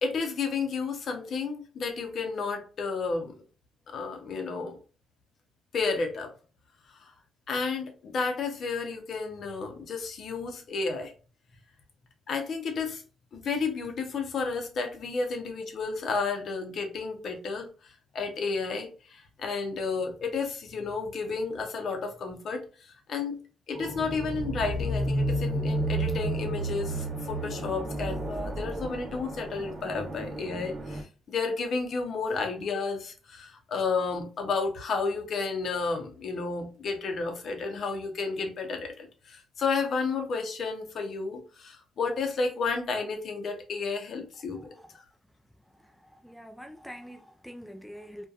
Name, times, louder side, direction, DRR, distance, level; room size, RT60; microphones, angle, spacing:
voice 1, 0.0-3.4 3.9-4.8 5.7-6.3 7.0-7.1 7.5-11.1 12.3-13.0 13.3-17.7 18.1-23.4 23.7-44.7, left 4 dB, 60° left, 0.6 m, -32 dB
sound 1, 23.7-31.0, right 1 dB, 30° right, 0.9 m, -32 dB
voice 2, 44.6-44.9 46.2-48.3, equal, ahead, 0.3 m, -45 dB
2.7 x 2.2 x 2.3 m
cardioid pair, 90°, 0 cm